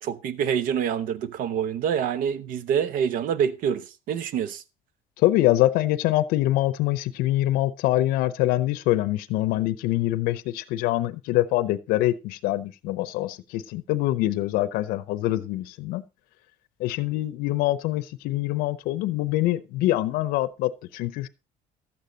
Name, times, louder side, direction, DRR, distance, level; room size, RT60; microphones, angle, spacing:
voice 1, 0.0-4.6, right 8 dB, 70° right, 0.9 m, -26 dB
voice 2, 5.2-16.0 16.8-21.3, left 16 dB, 85° left, 0.6 m, -24 dB
12.0 x 8.5 x 3.9 m
cardioid pair, 130°, 15 cm